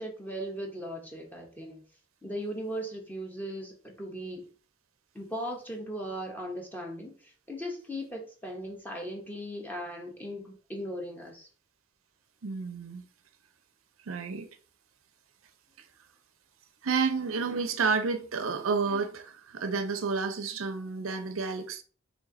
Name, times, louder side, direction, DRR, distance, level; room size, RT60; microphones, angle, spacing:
voice 1, 0.0-1.8 2.2-4.5 5.1-7.1 7.5-11.5, equal, 10° left, 0.9 m, -38 dB
voice 2, 12.4-13.0 14.1-14.5 16.8-21.8, right 4 dB, 85° right, 0.6 m, -30 dB
3.2 x 3.1 x 3.8 m
head